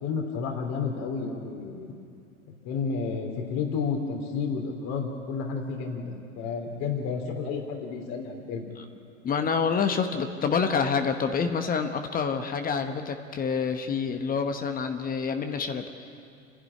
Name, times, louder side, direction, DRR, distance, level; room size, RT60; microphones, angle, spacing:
voice 1, 0.0-1.9 2.6-8.6, left 5 dB, 45° left, 2 dB, 3.1 m, -31 dB
voice 2, 9.2-15.8, left 6 dB, 20° left, 7 dB, 1.2 m, -27 dB
29.0 x 11.5 x 9.8 m, 2.5 s
figure-of-eight pair, 90°, 38 cm